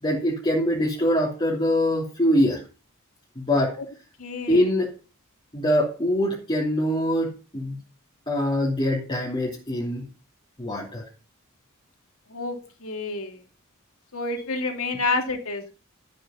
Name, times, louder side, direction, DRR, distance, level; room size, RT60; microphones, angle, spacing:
voice 1, 0.0-2.6 3.3-3.7 4.5-4.9 5.5-7.8 8.3-10.0 10.6-11.0, equal, 25° left, -4 dB, 3.0 m, -23 dB
voice 2, 4.2-4.7 12.3-13.4 14.1-15.7, left 3 dB, 70° left, 4 dB, 2.9 m, -29 dB
13.5 x 7.8 x 5.7 m, 0.35 s
head